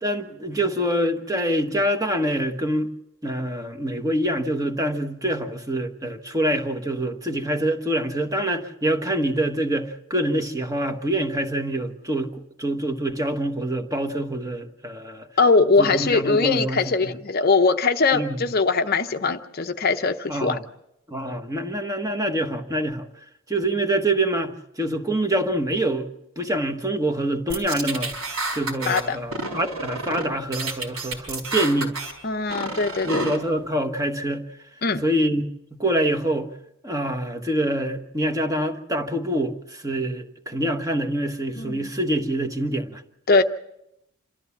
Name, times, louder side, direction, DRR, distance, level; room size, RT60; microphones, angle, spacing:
voice 1, 0.0-2.9 3.2-12.3 12.6-15.3 15.8-17.1 18.1-18.4 20.3-20.6 21.1-23.1 23.5-26.1 26.4-28.1 28.5-32.0 33.0-34.5 35.0-36.5 36.8-43.0, right 1 dB, 15° right, 1.2 m, -25 dB
voice 2, 15.4-20.6 28.9-29.2 32.2-33.3 34.8-35.0 41.6-41.9 43.3-43.4, left 4 dB, 45° left, 0.7 m, -21 dB
sound 1, 27.5-29.0 29.3-30.3 30.5-32.1 32.5-33.4, right 2 dB, 85° right, 4.7 m, -30 dB
27.5 x 13.5 x 7.2 m
head